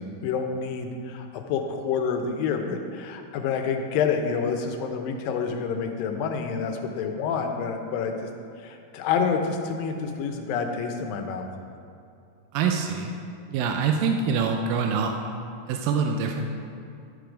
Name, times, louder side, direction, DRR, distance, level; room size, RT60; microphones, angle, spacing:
voice 1, 0.0-8.3 8.6-11.5, left 6 dB, 80° left, 5 dB, 2.4 m, -28 dB
voice 2, 12.5-13.1 13.5-15.2 15.7-16.4, right 5 dB, 85° right, 3 dB, 2.3 m, -25 dB
12.0 x 4.7 x 5.1 m, 2.6 s
omnidirectional pair, 4.0 m